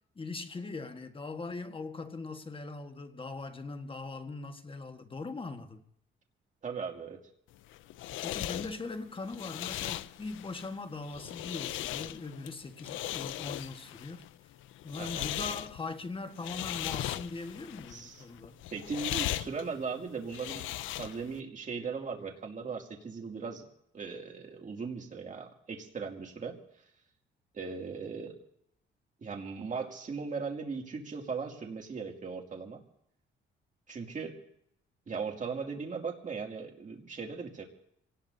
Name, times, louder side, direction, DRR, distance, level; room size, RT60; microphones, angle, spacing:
voice 1, 0.1-5.8 8.2-14.2 14.8-18.6, left 3 dB, 25° left, 1.5 m, -41 dB
voice 2, 6.6-7.2 15.0-15.3 17.9-18.2 18.7-20.6 21.0-23.6 23.9-26.6 27.5-28.4 29.2-32.8 33.9-34.3 35.1-37.7, right 5 dB, 40° right, 2.5 m, -38 dB
sound 1, 7.5-21.4, left 14 dB, 80° left, 0.5 m, -38 dB
27.0 x 18.5 x 2.7 m
cardioid pair, 90°, 20 cm